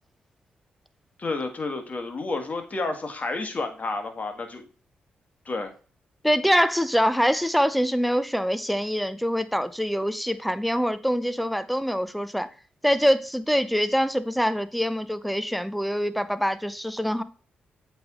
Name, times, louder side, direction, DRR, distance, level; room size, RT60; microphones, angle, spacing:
voice 1, 1.2-4.6 5.4-5.7, left 3 dB, 40° left, 1.5 m, -30 dB
voice 2, 6.2-12.5 12.8-17.2, equal, ahead, 0.6 m, -24 dB
7.8 x 3.4 x 3.7 m
supercardioid pair, 50°, 4 cm